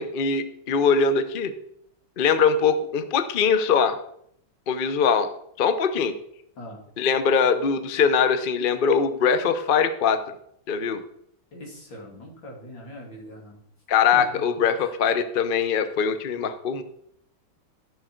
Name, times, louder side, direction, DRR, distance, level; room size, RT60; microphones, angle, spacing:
voice 1, 0.0-1.5 2.2-4.0 4.7-5.3 5.6-6.1 7.0-10.2 10.7-11.0 13.9-16.8, left 6 dB, 65° left, 10 dB, 0.5 m, -22 dB
voice 2, 11.5-13.6 14.1-14.2 14.8-14.9, left 1 dB, 80° left, -1 dB, 3.2 m, -41 dB
12.0 x 6.5 x 4.4 m, 0.70 s
omnidirectional pair, 2.0 m